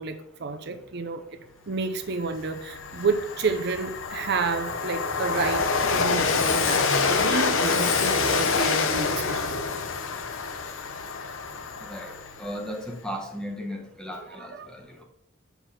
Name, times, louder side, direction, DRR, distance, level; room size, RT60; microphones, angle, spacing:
voice 1, 0.0-1.4 1.7-9.6 14.3-14.7, right 4 dB, 55° right, 7 dB, 0.6 m, -30 dB
Train, 1.8-1.9 2.3-12.7, left 4 dB, 75° left, 0.8 m, -26 dB
voice 2, 11.8-12.1 12.4-15.0, equal, 5° left, 2 dB, 1.1 m, -36 dB
6.9 x 4.0 x 5.8 m, 0.77 s
head